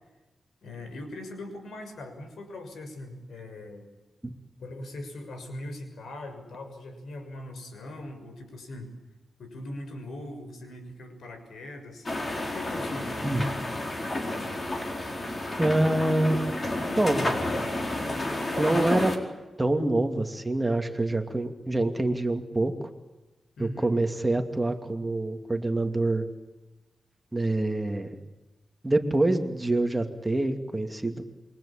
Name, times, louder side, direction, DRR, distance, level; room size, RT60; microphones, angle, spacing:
voice 1, 0.6-3.9 4.6-8.9 9.4-13.2 23.6-23.9, left 1 dB, 85° left, 7 dB, 6.5 m, -41 dB
sound 1, 12.1-19.2, left 1 dB, 30° left, 4.6 m, -30 dB
voice 2, 15.6-16.4 17.0-17.3 18.6-19.2 19.6-22.7 23.6-26.3 27.3-28.1 28.8-31.2, right 2 dB, 15° right, 5 dB, 2.6 m, -26 dB
27.5 x 24.0 x 8.8 m, 1.1 s
wide cardioid pair, 95°, 0 cm